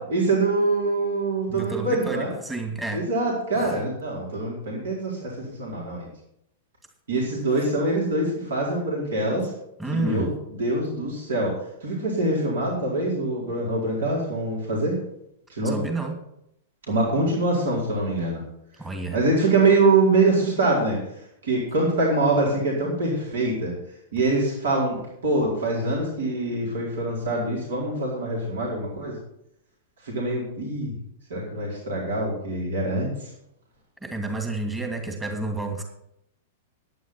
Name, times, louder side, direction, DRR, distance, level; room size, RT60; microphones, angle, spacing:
voice 1, 0.1-2.3 2.9-6.1 7.1-9.5 9.9-11.5 11.8-15.0 15.5-15.8 16.9-18.4 19.1-21.0 21.4-23.7 24.1-25.0 25.2-29.1 30.0-30.9 31.3-33.3, right 2 dB, 65° right, -4 dB, 4.5 m, -24 dB
voice 2, 1.5-3.0 3.6-3.8 9.8-10.3 15.6-16.2 18.8-19.2 34.0-35.8, right 3 dB, 10° right, 3 dB, 2.5 m, -30 dB
11.0 x 9.5 x 6.0 m, 0.78 s
figure-of-eight pair, 100°, 0 cm